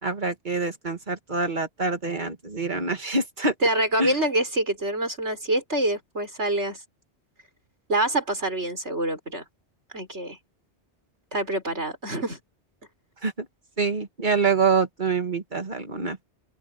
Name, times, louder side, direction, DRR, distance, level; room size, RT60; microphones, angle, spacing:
voice 1, 0.0-3.5 4.0-4.1 13.2-13.5 13.8-16.2, right 4 dB, 45° right, 2.2 m, -26 dB
voice 2, 3.6-6.8 7.9-9.4 9.9-10.4 11.3-12.4, right 1 dB, 80° right, 6.4 m, -26 dB
open air
omnidirectional pair, 1.2 m